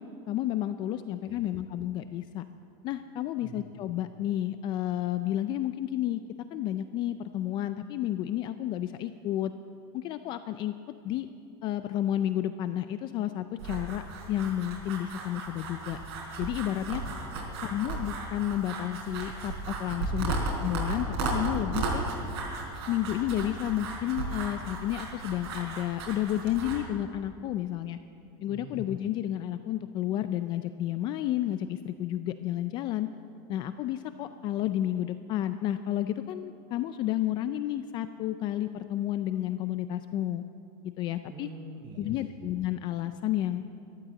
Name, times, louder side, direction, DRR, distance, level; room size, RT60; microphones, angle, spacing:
voice 1, 0.0-2.5 2.8-6.2 6.5-9.5 9.9-10.7 11.0-11.3 11.6-16.0 16.4-17.0 17.6-22.0 22.9-28.0 28.4-33.1 33.5-40.4 41.0-41.5 42.0-43.8, left 12 dB, 35° left, 11 dB, 0.4 m, -31 dB
sound 1, 13.6-26.8, right 3 dB, 80° right, 4.2 m, -35 dB
voice 2, 17.0-17.6 20.1-20.4 28.5-28.8 41.3-42.4, right 3 dB, 30° right, 2 dB, 1.0 m, -46 dB
13.0 x 13.0 x 7.6 m, 2.6 s
supercardioid pair, 165°, 14 cm